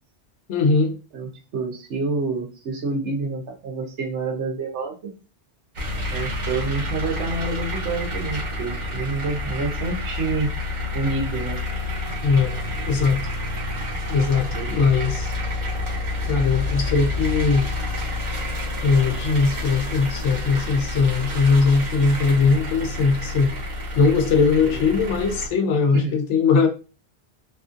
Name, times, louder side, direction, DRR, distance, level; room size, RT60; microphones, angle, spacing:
voice 1, 0.5-0.9 12.2-12.5 12.9-13.2 14.1-15.3 16.3-17.7 18.8-23.5 24.0-26.7, left 4 dB, 85° left, 1.0 m, -20 dB
voice 2, 1.1-5.1 6.1-10.5 10.9-11.6 14.4-15.0 24.7-24.8 25.9-26.2, right 3 dB, 85° right, 1.1 m, -28 dB
sound 1, 5.8-25.5, left 2 dB, 45° right, 0.9 m, -29 dB
2.8 x 2.5 x 2.5 m
omnidirectional pair, 1.2 m